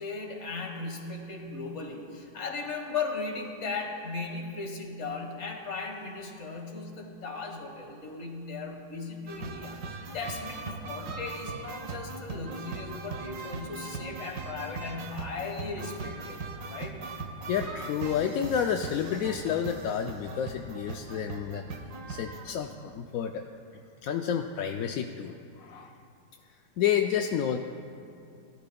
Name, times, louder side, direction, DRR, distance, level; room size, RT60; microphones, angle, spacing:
voice 1, 0.0-16.4 16.7-17.0, left 4 dB, 45° left, 2 dB, 1.6 m, -37 dB
sound 1, 9.3-22.5, right 3 dB, 75° right, 1.5 m, -39 dB
voice 2, 17.5-21.6 22.1-23.4 24.0-25.9 26.8-27.6, left 8 dB, 70° left, 4 dB, 0.9 m, -30 dB
21.5 x 13.5 x 2.3 m, 2.5 s
omnidirectional pair, 1.8 m